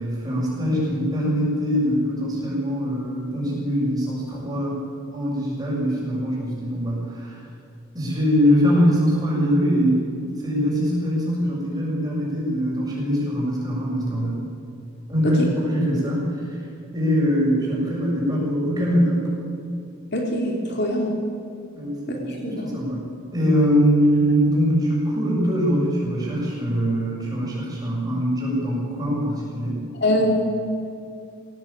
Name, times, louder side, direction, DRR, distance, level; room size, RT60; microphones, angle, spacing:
voice 1, 0.0-4.8 5.1-7.4 7.9-10.0 10.4-14.4 15.1-16.6 16.9-19.2 21.7-23.0 23.3-29.8, equal, 15° right, -4 dB, 7.4 m, -22 dB
voice 2, 20.1-21.1 22.1-22.6 30.0-30.3, left 1 dB, 50° left, 0 dB, 3.2 m, -23 dB
21.5 x 17.5 x 8.9 m, 2.6 s
head